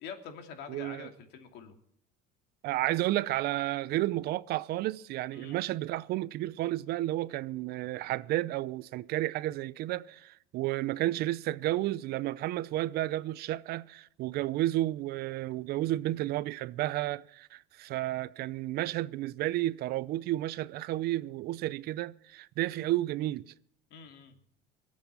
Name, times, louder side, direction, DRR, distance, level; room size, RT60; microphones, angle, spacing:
voice 1, 0.0-1.8 5.3-5.6 23.9-24.3, left 6 dB, 65° left, 2.8 m, -45 dB
voice 2, 0.7-1.1 2.6-23.5, right 15 dB, 55° right, 0.6 m, -32 dB
19.5 x 8.4 x 7.4 m
supercardioid pair, 115°, 19 cm